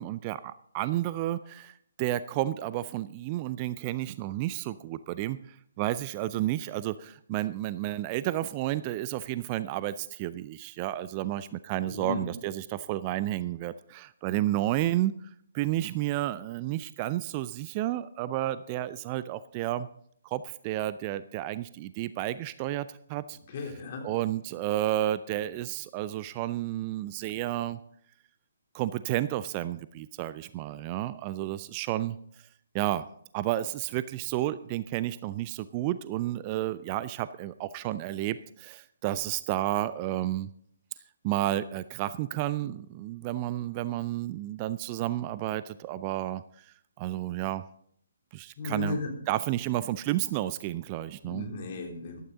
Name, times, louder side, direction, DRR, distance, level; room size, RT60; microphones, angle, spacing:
voice 1, 0.0-15.3 15.5-19.9 20.2-23.4 24.0-27.8 28.7-32.5 32.7-33.1 33.3-40.5 41.2-47.6 48.3-49.0 49.3-51.5, right 14 dB, 25° right, 16 dB, 0.4 m, -31 dB
voice 2, 11.8-12.3 23.5-24.1 48.6-49.1 51.2-52.2, left 3 dB, 40° left, 1 dB, 3.5 m, -35 dB
14.5 x 12.0 x 3.8 m, 0.65 s
figure-of-eight pair, 135°, 0 cm